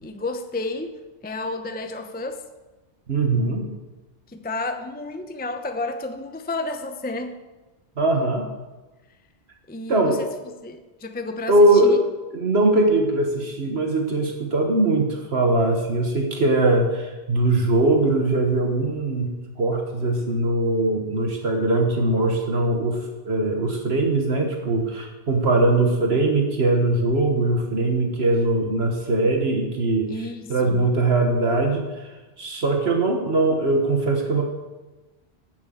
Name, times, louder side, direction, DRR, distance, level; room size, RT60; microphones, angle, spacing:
voice 1, 0.0-2.5 4.3-7.4 9.7-12.0 30.1-30.9, left 2 dB, 10° left, 7 dB, 0.6 m, -31 dB
voice 2, 3.1-3.7 8.0-8.5 9.9-10.2 11.5-12.0 12.3-19.3 19.6-30.1 30.5-34.4, right 2 dB, 70° right, 2 dB, 1.6 m, -21 dB
13.0 x 7.7 x 7.8 m, 1.2 s
omnidirectional pair, 1.1 m